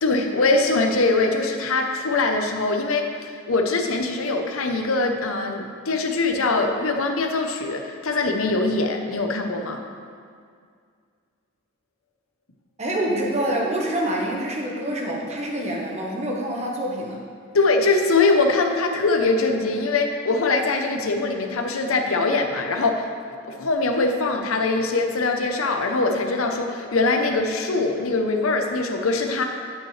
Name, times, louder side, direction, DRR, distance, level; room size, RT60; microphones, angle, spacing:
voice 1, 0.0-9.8 17.5-23.1 23.5-29.4, left 3 dB, 90° left, 4 dB, 0.9 m, -22 dB
voice 2, 12.8-17.2, right 1 dB, 30° right, -2 dB, 1.2 m, -26 dB
9.4 x 8.9 x 3.3 m, 2.1 s
head